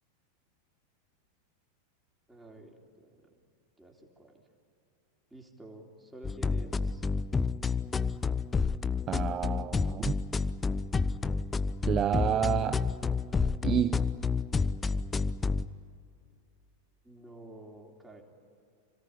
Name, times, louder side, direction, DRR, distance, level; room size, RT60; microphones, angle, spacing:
voice 1, 2.3-3.3 3.8-4.4 5.3-7.0 17.0-18.2, right 1 dB, 5° right, 0 dB, 3.7 m, -50 dB
sound 1, 6.2-15.7, left 4 dB, 15° left, 0.6 m, -30 dB
voice 2, 9.1-10.1 11.9-12.8 13.6-14.0, right 10 dB, 30° right, 9 dB, 0.7 m, -29 dB
27.0 x 18.0 x 9.9 m, 2.6 s
figure-of-eight pair, 90°, 0 cm